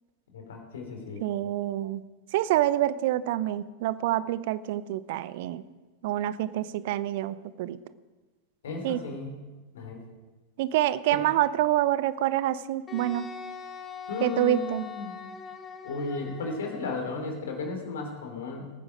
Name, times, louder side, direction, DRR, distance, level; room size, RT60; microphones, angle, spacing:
voice 1, 0.3-1.3 8.6-9.4 9.7-10.0 11.1-11.2 14.1-15.2 15.8-18.7, left 3 dB, 60° left, 3 dB, 3.3 m, -34 dB
voice 2, 1.2-2.0 2.3-5.6 6.0-7.8 8.8-9.0 10.6-13.3 14.2-14.8, right 13 dB, 50° right, 17 dB, 0.6 m, -27 dB
Wind instrument woodwind instrument, 12.9-17.2, left 5 dB, 20° left, 1.4 m, -41 dB
21.5 x 9.8 x 5.1 m, 1.2 s
figure-of-eight pair, 90°, 0 cm